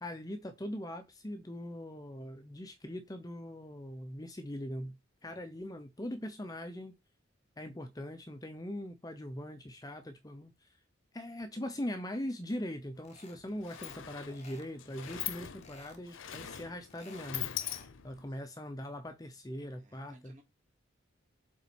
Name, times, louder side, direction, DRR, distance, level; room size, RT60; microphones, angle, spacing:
voice 1, 0.0-5.0 5.2-6.9 7.6-10.7 11.1-20.3, left 1 dB, 20° left, 0.7 m, -41 dB
Sliding door, 13.0-13.1 13.4-18.3, left 11 dB, 85° left, 0.7 m, -42 dB
sound 1, 13.0-13.4 13.7-14.0 14.3-15.3 15.6-16.0 16.3-17.9, left 3 dB, 35° left, 1.4 m, -55 dB
voice 2, 18.1-18.4 19.7-20.4, right 1 dB, 40° right, 2.8 m, -61 dB
7.4 x 4.0 x 4.3 m
head